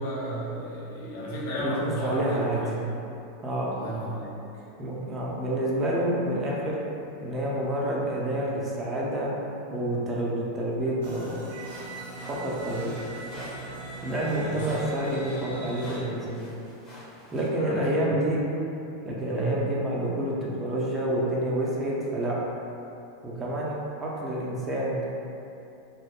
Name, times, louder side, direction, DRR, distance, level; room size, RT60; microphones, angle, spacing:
voice 1, 0.0-2.8 3.7-4.3 12.7-12.9 14.3-14.7 17.6-17.8 19.3-19.6, right 1 dB, 65° left, -6 dB, 0.7 m, -33 dB
voice 2, 2.0-2.6 3.4-3.8 4.8-6.8 7.2-9.3 9.7-11.4 12.3-12.9 14.0-16.5 17.3-18.4 19.0-22.4 23.2-25.0, right 1 dB, 25° right, -5 dB, 0.6 m, -28 dB
sound 1, 11.0-16.0, right 2 dB, 70° right, 0.6 m, -40 dB
sound 2, 11.6-17.5, right 1 dB, 25° left, 0.9 m, -47 dB
2.3 x 2.1 x 3.5 m, 2.8 s
figure-of-eight pair, 85°, 0 cm